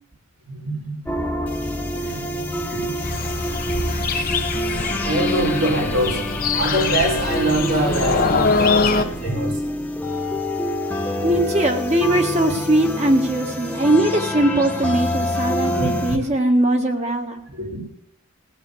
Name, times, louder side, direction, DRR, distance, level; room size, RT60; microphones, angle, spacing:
voice 1, 0.5-1.0 1.7-2.9 5.0-9.6 9.9-10.1 11.1-11.4 15.7-16.3 17.5-17.8, right 1 dB, 75° right, -4 dB, 5.7 m, -25 dB
sound 1, 1.1-16.2, equal, 5° left, 1.2 m, -26 dB
sound 2, 3.0-9.0, left 4 dB, 40° left, 0.9 m, -23 dB
voice 2, 11.2-17.4, right 1 dB, 30° right, 4 dB, 1.7 m, -20 dB
17.0 x 8.2 x 8.0 m, 0.75 s
head